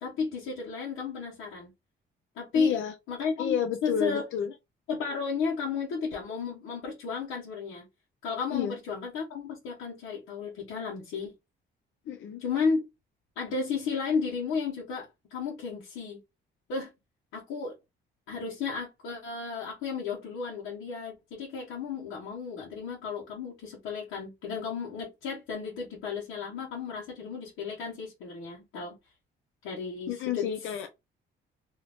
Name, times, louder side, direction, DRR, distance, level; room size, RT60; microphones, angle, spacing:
voice 1, 0.0-1.7 2.4-2.8 3.1-4.2 4.9-7.8 8.2-11.3 12.4-12.8 13.4-16.2 16.7-16.9 17.3-17.7 18.3-29.0 29.6-30.4, left 5 dB, 90° left, 1.1 m, -33 dB
voice 2, 2.5-2.9 3.4-4.5 8.5-8.8 12.1-12.4 30.1-30.9, left 8 dB, 75° left, 0.6 m, -30 dB
2.7 x 2.4 x 3.5 m
cardioid pair, 90°, 20 cm